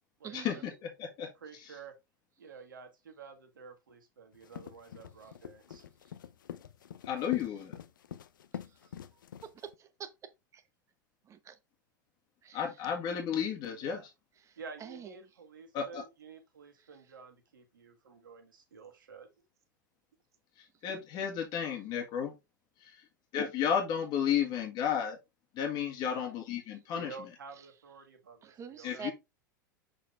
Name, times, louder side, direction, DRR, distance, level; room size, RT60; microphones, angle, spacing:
voice 1, 0.2-0.7 8.7-8.9 9.4-10.1 10.5-10.6 11.2-11.6 12.4-12.9 14.4-15.2 16.8-16.9 28.4-29.1, right 8 dB, 30° right, 1.0 m, -47 dB
voice 2, 0.8-1.3 1.6-1.7 7.0-7.8 12.5-14.0 15.7-16.0 20.6-22.3 23.3-25.2 25.5-27.1 28.8-29.1, left 8 dB, 40° left, 1.8 m, -32 dB
voice 3, 1.3-2.0 2.4-6.1 13.8-14.1 14.6-19.3 26.0-26.3 26.9-29.1, right 5 dB, 75° right, 1.6 m, -50 dB
sound 1, 4.3-9.7, left 9 dB, 75° left, 0.5 m, -45 dB
6.6 x 4.3 x 3.4 m
hypercardioid pair, 95°, 11 cm